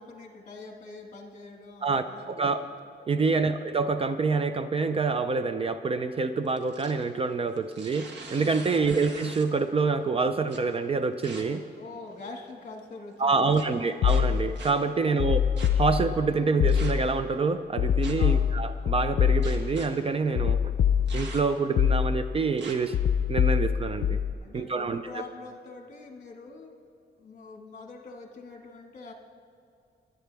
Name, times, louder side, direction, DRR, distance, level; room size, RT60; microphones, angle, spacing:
voice 1, 0.0-2.6 8.6-9.0 11.8-13.8 15.0-15.4 18.2-18.5 24.4-26.7 27.2-29.1, left 3 dB, 45° left, 2 dB, 1.7 m, -44 dB
voice 2, 1.8-2.6 3.1-11.6 13.2-15.4 15.8-20.6 21.1-23.0 23.3-24.2 24.5-25.0, right 4 dB, 35° right, 9 dB, 0.4 m, -26 dB
sound 1, 6.4-7.0 7.6-9.6 10.5-10.6 11.2-11.4 12.1-12.5 13.5-13.6 14.0-14.7 15.6-15.7 16.7-17.1 18.0-18.3 19.4-19.9 21.1-21.6 22.6-22.7, right 3 dB, 80° right, 1.5 m, -43 dB
sound 2, 14.0-14.6 15.2-16.3 16.6-17.2 17.8-19.8 20.3-21.4 21.8-22.4 22.9-24.3, left 8 dB, 85° left, 0.5 m, -25 dB
22.5 x 9.2 x 3.4 m, 2.4 s
wide cardioid pair, 175°, 18 cm